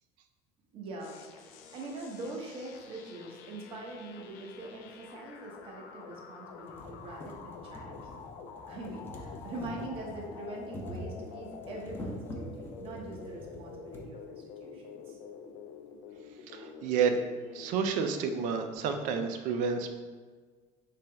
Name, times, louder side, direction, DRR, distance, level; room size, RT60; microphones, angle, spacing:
voice 1, 0.7-1.2 1.7-8.2 8.7-15.2, right 2 dB, 40° right, -1 dB, 0.8 m, -43 dB
sound 1, 1.0-18.8, left 5 dB, 90° left, 0.5 m, -48 dB
sound 2, 4.5-4.6 5.6-5.7 6.1-6.2 6.5-14.1 15.0-15.1 15.3-15.4, equal, 15° left, 0.4 m, -45 dB
voice 2, 16.5-17.2 17.5-19.9, right 6 dB, 60° right, 6 dB, 0.5 m, -30 dB
3.9 x 3.4 x 3.3 m, 1.5 s
cardioid pair, 170°, 15 cm